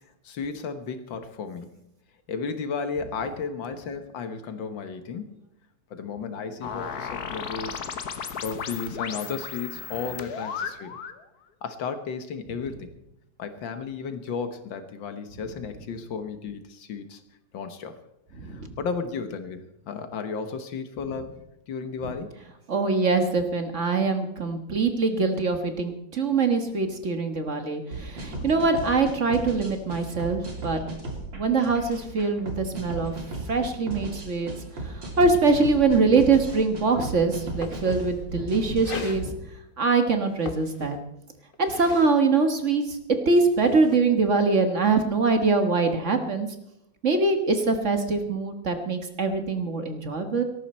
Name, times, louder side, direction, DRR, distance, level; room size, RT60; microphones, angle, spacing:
voice 1, 0.2-1.8 2.3-5.4 5.9-7.8 8.4-11.0 11.6-12.9 13.4-17.2 17.5-18.0 18.4-21.4 21.7-22.4, left 5 dB, 90° left, 9 dB, 2.0 m, -34 dB
sound 1, 6.6-11.2, left 7 dB, 60° left, 1.5 m, -35 dB
voice 2, 18.4-18.7 22.7-30.8 31.3-34.5 34.8-39.2 39.8-41.0 41.6-43.0 43.2-46.5 47.0-50.4, right 4 dB, 45° right, 6 dB, 1.6 m, -23 dB
sound 2, 27.9-39.3, right 2 dB, 80° right, 3.7 m, -36 dB
sound 3, 37.0-37.1 37.3-38.3 38.8-39.2 40.2-41.2 41.5-42.1 43.3-44.0, left 4 dB, 35° left, 1.1 m, -38 dB
17.5 x 13.5 x 4.3 m, 0.84 s
omnidirectional pair, 2.0 m